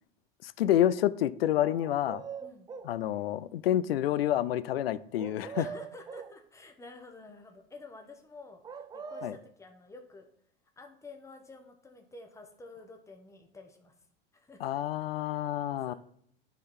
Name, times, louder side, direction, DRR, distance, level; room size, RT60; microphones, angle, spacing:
voice 1, 0.4-2.2 2.8-5.7 9.2-9.3 14.6-15.9, left 12 dB, 85° left, 0.5 m, -28 dB
sound 1, 1.6-3.0 5.2-6.4 8.6-9.4, right 6 dB, 15° right, 0.4 m, -42 dB
voice 2, 2.4-2.7 5.5-10.3 10.8-13.9 14.3-15.5 15.8-15.9, left 3 dB, 10° left, 1.2 m, -51 dB
9.8 x 4.0 x 4.4 m
hypercardioid pair, 95°, 29 cm